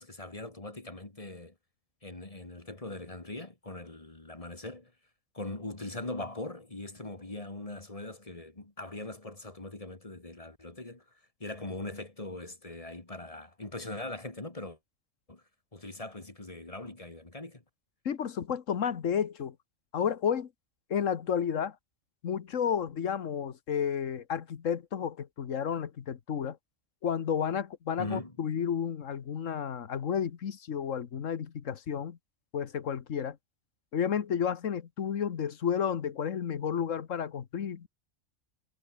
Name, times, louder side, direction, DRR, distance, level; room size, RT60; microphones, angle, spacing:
voice 1, 0.0-1.5 2.0-4.9 5.3-11.0 11.4-14.8 15.3-15.4 15.7-17.6 28.0-28.3, left 2 dB, 30° left, 2.2 m, -41 dB
voice 2, 18.0-19.5 19.9-20.5 20.9-21.8 22.2-26.6 27.0-32.2 32.5-33.4 33.9-37.9, left 8 dB, 90° left, 1.5 m, -31 dB
omnidirectional pair, 1.3 m